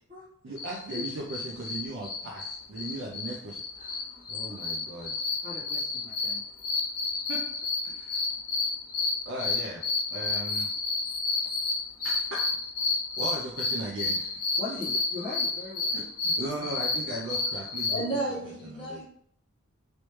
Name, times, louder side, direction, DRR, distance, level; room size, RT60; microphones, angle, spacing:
voice 1, 0.4-3.9 4.3-5.2 7.3-7.4 7.8-8.2 9.3-9.8 10.1-10.7 12.0-12.4 13.2-14.3 14.7-14.8 15.9-18.0 18.6-19.0, right 2 dB, 60° right, -1 dB, 0.5 m, -37 dB
sound 1, 0.6-18.0, left 3 dB, 80° left, 1.0 m, -30 dB
voice 2, 3.8-4.5 5.4-6.4 14.6-16.0, left 3 dB, 30° right, -11 dB, 1.2 m, -40 dB
voice 3, 17.9-19.0, right 1 dB, 25° left, -6 dB, 1.2 m, -32 dB
3.1 x 3.1 x 3.1 m, 0.64 s
head